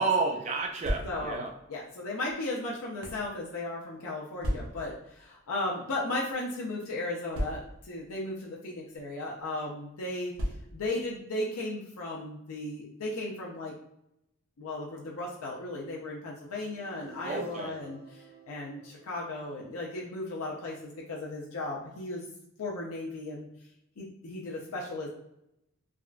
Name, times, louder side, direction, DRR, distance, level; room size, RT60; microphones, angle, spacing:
voice 1, 0.0-1.5 17.2-17.8, right 4 dB, 30° right, 2 dB, 0.4 m, -30 dB
sound 1, 0.7-1.5 2.3-3.3 4.4-5.0 5.9-6.1 6.3-6.4 7.3-8.0 8.9-9.1 10.3-11.0, equal, 75° right, 0.6 m, -35 dB
voice 2, 1.0-1.4 1.7-13.7 14.6-22.2 22.6-23.5 24.0-25.1, left 2 dB, 85° left, -3 dB, 0.5 m, -36 dB
sound 2, 16.2-20.3, right 3 dB, 55° right, 1.0 m, -53 dB
3.5 x 2.2 x 2.3 m, 0.80 s
head